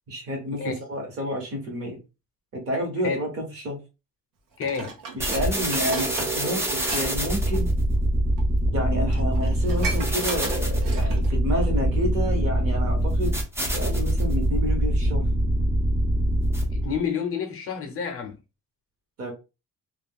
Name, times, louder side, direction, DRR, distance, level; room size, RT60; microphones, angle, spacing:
voice 1, 0.1-2.0 2.5-3.8 5.1-7.7 8.7-15.2 19.2-19.3, equal, 40° right, 1.1 m, -30 dB
voice 2, 4.6-4.9 16.7-18.4, left 6 dB, 45° left, 0.6 m, -29 dB
Dishes pots and pans, 4.6-7.0 7.3-7.6 8.4-8.5 8.8-8.9 9.1-11.3 11.8-11.9, right 4 dB, 75° right, 0.9 m, -36 dB
sound 1, 5.2-17.0, right 1 dB, 10° right, 0.4 m, -24 dB
2.4 x 2.3 x 3.5 m
cardioid pair, 175°, 34 cm